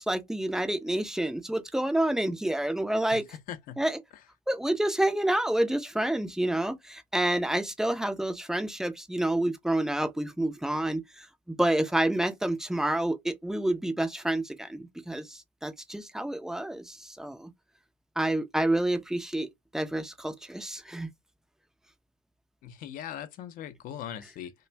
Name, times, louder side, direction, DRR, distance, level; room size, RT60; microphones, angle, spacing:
voice 1, 0.0-3.2 3.8-4.0 4.5-17.5 18.2-21.1, right 1 dB, ahead, 0.5 m, -29 dB
voice 2, 3.1-3.8 22.6-24.5, left 10 dB, 45° left, 0.6 m, -40 dB
2.4 x 2.2 x 3.2 m
hypercardioid pair, 80°, 21 cm